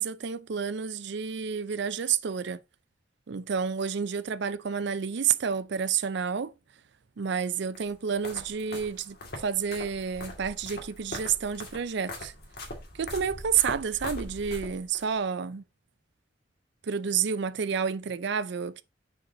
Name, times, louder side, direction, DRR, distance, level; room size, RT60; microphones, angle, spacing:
voice 1, 0.0-2.6 3.3-6.5 7.2-12.3 12.9-15.6 16.8-18.8, right 7 dB, 70° right, 0.5 m, -30 dB
sound 1, 7.7-15.0, left 1 dB, 60° left, 2.1 m, -41 dB
6.6 x 4.6 x 3.8 m
head